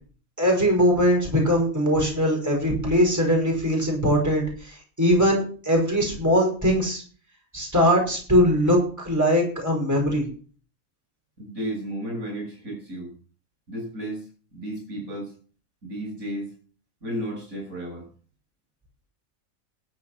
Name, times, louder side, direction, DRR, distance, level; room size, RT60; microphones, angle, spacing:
voice 1, 0.4-7.0 7.5-10.3, equal, 10° right, -1 dB, 5.3 m, -21 dB
voice 2, 11.4-13.1 13.7-15.3 15.8-16.5 17.0-18.1, equal, 80° right, -1 dB, 8.1 m, -33 dB
12.5 x 7.3 x 7.3 m, 0.41 s
omnidirectional pair, 1.4 m